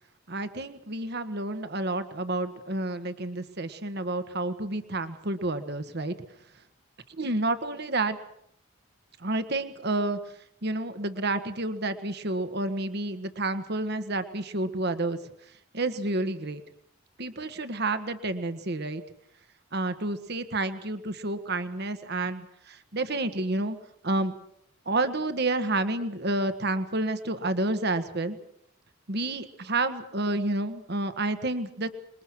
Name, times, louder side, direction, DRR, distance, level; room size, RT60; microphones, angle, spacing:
voice 1, 0.3-6.1 7.1-8.2 9.2-10.2 10.6-15.2 15.7-16.6 17.2-19.0 19.7-23.8 24.0-24.3 24.8-28.4 29.1-31.9, right 2 dB, 55° right, 10 dB, 1.4 m, -29 dB
27.0 x 21.5 x 6.2 m, 0.70 s
head